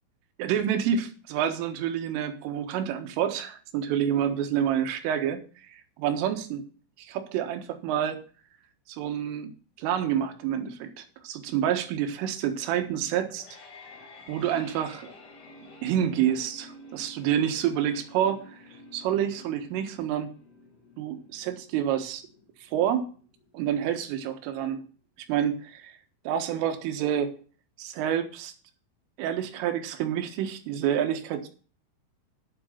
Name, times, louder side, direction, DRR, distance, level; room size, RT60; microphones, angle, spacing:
voice 1, 0.4-5.4 5.7-6.6 7.0-8.2 8.9-9.5 9.8-13.5 14.3-15.1 15.8-18.6 18.9-20.3 21.0-22.2 22.6-23.1 23.5-24.8 25.3-26.0 26.3-27.4 27.8-28.5 29.2-31.5, right 9 dB, 90° right, 7 dB, 4.0 m, -28 dB
sound 1, 13.1-24.1, left 1 dB, 60° left, 4.9 m, -50 dB
10.5 x 7.7 x 5.8 m, 0.39 s
omnidirectional pair, 5.6 m